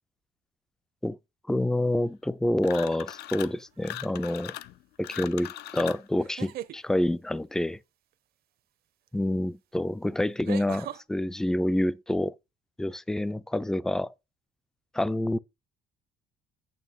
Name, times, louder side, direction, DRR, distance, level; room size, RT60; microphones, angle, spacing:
voice 1, 1.5-4.5 5.0-7.8 9.1-12.3 12.8-14.1 14.9-15.4, left 1 dB, 5° left, 0.3 m, -27 dB
sound 1, 2.6-3.6 3.8-6.1, left 13 dB, 75° left, 0.6 m, -39 dB
sound 2, 3.6-4.0 6.2-6.8 9.1-9.2 10.4-11.0, right 13 dB, 65° right, 0.7 m, -38 dB
9.1 x 3.1 x 6.0 m
cardioid pair, 110°, 17 cm